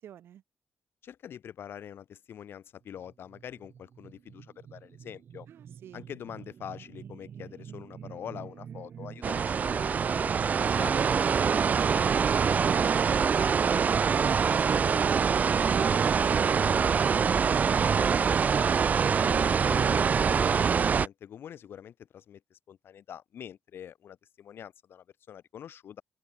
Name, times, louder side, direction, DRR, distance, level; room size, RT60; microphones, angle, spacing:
voice 1, 0.0-0.4 5.5-6.1 11.3-11.9 12.2-13.7 14.0-18.4, right 10 dB, 85° right, 6.2 m, -48 dB
voice 2, 1.0-5.5 5.9-11.1 19.2-26.0, left 9 dB, 70° left, 5.3 m, -45 dB
sound 1, 3.0-12.8, right 8 dB, 60° right, 1.4 m, -44 dB
sound 2, 9.2-21.1, right 6 dB, 45° right, 0.4 m, -24 dB
open air
cardioid pair, 110°, 4 cm